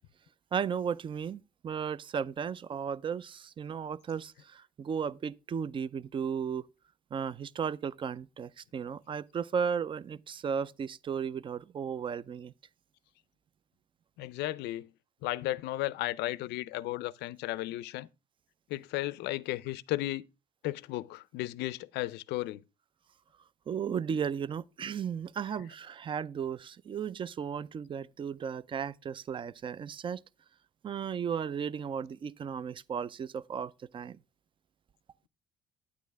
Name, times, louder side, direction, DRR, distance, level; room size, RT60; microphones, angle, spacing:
voice 1, 0.5-6.7 7.1-12.5 23.7-30.2 30.8-34.2, right 7 dB, 30° right, 0.4 m, -35 dB
voice 2, 14.2-14.9 15.2-18.1 18.7-20.2 20.6-22.6, left 16 dB, 80° left, 0.5 m, -34 dB
9.4 x 8.6 x 3.4 m
cardioid pair, 110°, 17 cm